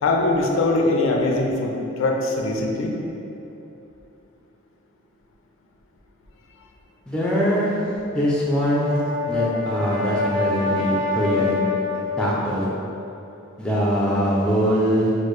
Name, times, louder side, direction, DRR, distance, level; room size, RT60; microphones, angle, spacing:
voice 1, 0.0-3.0, left 2 dB, 70° left, 0 dB, 0.4 m, -22 dB
voice 2, 7.1-7.8 8.1-9.0 9.3-11.6 12.2-12.6 13.6-15.1, equal, 5° left, -6 dB, 0.4 m, -22 dB
Brass instrument, 8.4-12.7, left 3 dB, 90° right, 0.7 m, -26 dB
4.3 x 2.1 x 3.1 m, 2.9 s
head